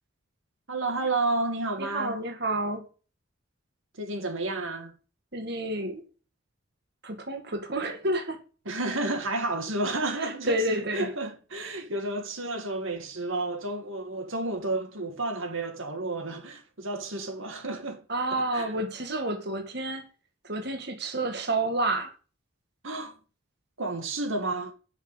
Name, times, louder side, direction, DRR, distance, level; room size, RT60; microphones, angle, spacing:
voice 1, 0.7-2.2 4.0-4.9 8.7-18.0 18.3-18.7 22.8-23.1 23.8-24.7, right 2 dB, 70° right, 2.1 m, -31 dB
voice 2, 1.8-2.8 5.3-6.0 7.0-8.4 10.2-11.1 18.1-20.0 20.4-22.1, right 2 dB, 50° right, 2.1 m, -29 dB
9.9 x 6.6 x 8.2 m
head